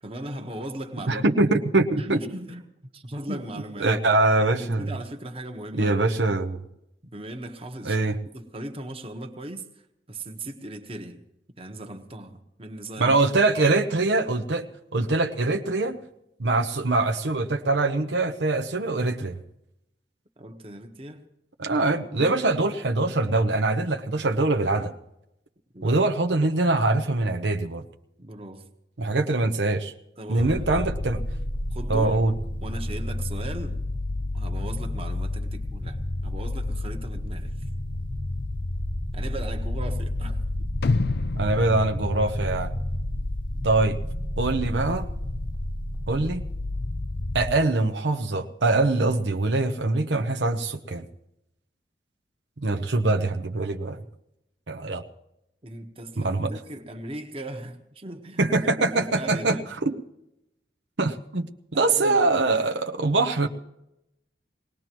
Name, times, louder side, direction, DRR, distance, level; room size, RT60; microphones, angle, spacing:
voice 1, 0.0-1.4 2.0-2.6 2.9-3.9 4.6-6.0 7.1-8.0 8.3-9.7 10.1-11.2 11.6-13.2 20.4-21.2 22.1-22.4 22.7-23.2 25.7-26.0 28.2-28.7 30.2-30.9 31.7-32.3 32.6-33.8 34.3-37.5 39.1-40.7 55.6-58.4 58.7-59.7 61.7-62.2, right 1 dB, 35° right, 1.3 m, -38 dB
voice 2, 1.1-2.2 3.3-3.4 3.8-4.9 5.7-6.6 7.8-8.2 13.0-14.7 14.9-16.0 16.4-19.4 21.6-24.9 25.8-27.8 29.0-29.9 30.3-31.2 31.9-32.3 41.4-42.7 43.6-44.0 44.4-45.1 46.1-46.4 47.3-51.1 52.6-54.0 54.7-55.0 56.2-56.5 58.4-59.9 61.0-63.5, right 2 dB, 85° right, 0.9 m, -23 dB
sound 1, 30.4-47.5, left 1 dB, 30° left, 0.7 m, -30 dB
sound 2, 40.8-43.0 43.3-43.4, left 3 dB, 60° left, 0.4 m, -29 dB
22.0 x 18.5 x 3.0 m
head